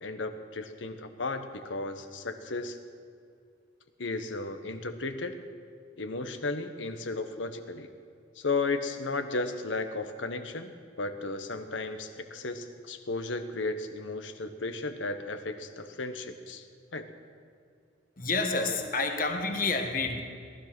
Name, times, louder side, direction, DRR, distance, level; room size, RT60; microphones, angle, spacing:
voice 1, 0.0-2.8 4.0-5.4 6.0-7.9 8.4-10.7 11.0-16.6 16.9-17.1, left 3 dB, 90° left, 8 dB, 1.2 m, -34 dB
voice 2, 18.2-20.2, left 3 dB, 50° left, 5 dB, 1.5 m, -29 dB
18.5 x 12.0 x 6.1 m, 2.3 s
head